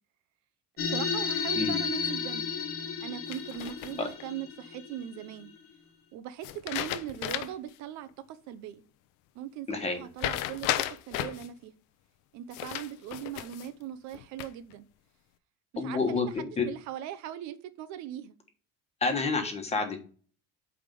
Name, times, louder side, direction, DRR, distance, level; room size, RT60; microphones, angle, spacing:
sound 1, 0.8-5.7, left 5 dB, 45° left, 1.3 m, -33 dB
voice 1, 0.8-2.5 3.0-5.5 6.1-8.8 9.3-11.7 12.3-14.8 15.8-18.4, right 11 dB, 60° right, 0.7 m, -40 dB
voice 2, 1.5-1.9 4.0-4.1 9.7-10.0 15.8-16.7 19.0-20.0, left 4 dB, 20° left, 1.3 m, -29 dB
sound 2, 3.3-4.2 6.4-7.7 8.1-8.2 10.2-11.5 12.5-13.7 14.1-14.7, left 13 dB, 75° left, 0.7 m, -34 dB
8.7 x 3.5 x 5.3 m
cardioid pair, 160°, 31 cm